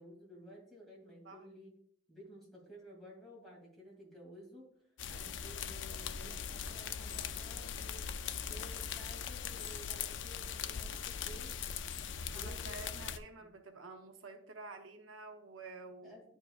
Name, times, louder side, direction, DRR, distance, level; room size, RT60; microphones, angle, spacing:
voice 1, 0.0-1.7 2.1-4.7 5.1-8.1 8.5-11.6 12.3-13.0 13.4-13.5 16.0-16.2, equal, ahead, -5 dB, 2.5 m, -54 dB
sound 1, 5.0-13.2, left 7 dB, 65° left, 0.4 m, -40 dB
voice 2, 12.3-16.2, right 3 dB, 85° right, 5 dB, 0.8 m, -50 dB
11.0 x 4.7 x 2.4 m, 0.67 s
head